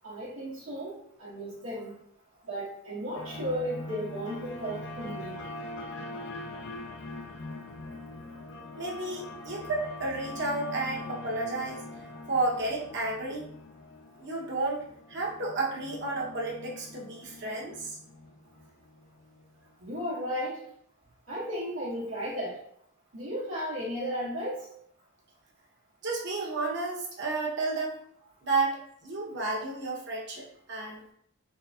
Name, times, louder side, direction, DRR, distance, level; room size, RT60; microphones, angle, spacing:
voice 1, 0.0-1.9 2.5-5.4 19.8-20.6 21.3-22.6 23.1-24.6, equal, 80° right, -10 dB, 1.2 m, -34 dB
sound 1, 3.2-19.5, left 2 dB, 55° left, 0.5 m, -43 dB
voice 2, 8.8-11.8 12.3-13.5 14.2-18.0 26.0-28.0 28.4-30.4 30.7-31.0, right 3 dB, 55° right, -2 dB, 1.0 m, -32 dB
3.9 x 3.2 x 2.7 m, 0.68 s
head